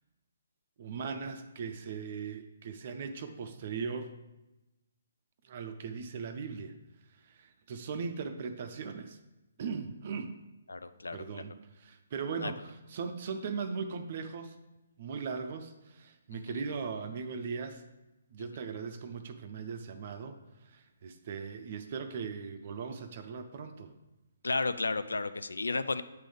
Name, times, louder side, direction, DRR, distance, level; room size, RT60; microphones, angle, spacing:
voice 1, 0.8-4.2 5.4-6.8 7.1-9.2 9.6-10.4 11.1-14.6 15.0-17.8 18.3-23.9, right 5 dB, 40° right, 8 dB, 0.5 m, -39 dB
voice 2, 10.7-11.4 12.4-12.5 16.5-16.6 24.4-26.0, left 3 dB, 70° left, 12 dB, 0.4 m, -33 dB
8.0 x 3.8 x 4.9 m, 1.0 s
figure-of-eight pair, 135°, 0 cm